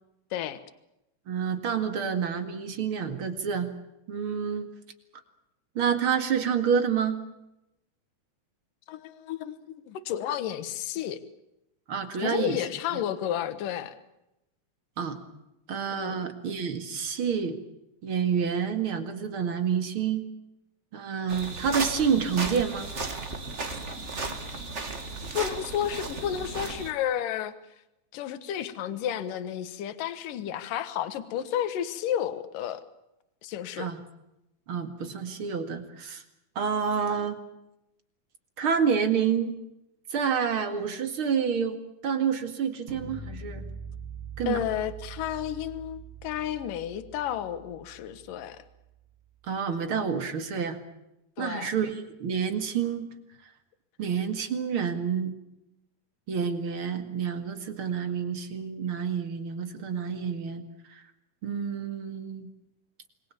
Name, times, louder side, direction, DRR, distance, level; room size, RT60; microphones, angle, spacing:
voice 1, 0.3-0.6 8.9-11.2 12.2-13.9 15.9-16.2 24.5-24.7 25.3-27.5 28.1-32.8 33.4-33.9 44.5-48.6 51.4-51.7, left 10 dB, 75° left, 12 dB, 2.9 m, -32 dB
voice 2, 1.3-3.7 4.1-4.7 5.8-7.2 11.9-12.6 12.9-13.0 15.0-15.2 15.7-17.6 18.0-20.2 20.9-22.9 33.8-34.0 34.7-36.2 36.6-37.4 38.6-39.5 40.1-41.8 42.0-43.6 44.4-44.6 49.4-50.8 51.4-53.1 54.0-55.3 56.3-60.6 60.9-61.0 61.4-62.5, right 7 dB, 45° right, 9 dB, 2.5 m, -28 dB
sound 1, 21.3-26.9, right 3 dB, 25° right, 1.6 m, -35 dB
sound 2, 42.9-48.9, right 5 dB, 65° right, 5.0 m, -43 dB
27.5 x 22.0 x 7.2 m, 0.88 s
omnidirectional pair, 4.0 m